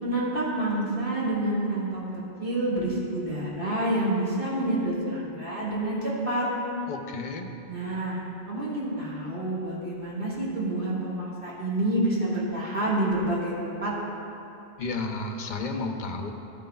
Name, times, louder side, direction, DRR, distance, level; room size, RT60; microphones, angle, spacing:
voice 1, 0.0-6.5 7.7-8.2 8.5-13.9, right 1 dB, 55° right, -7 dB, 1.8 m, -28 dB
voice 2, 6.9-7.5 14.8-16.3, left 3 dB, 50° left, 4 dB, 0.7 m, -32 dB
13.5 x 9.1 x 2.3 m, 2.8 s
omnidirectional pair, 1.1 m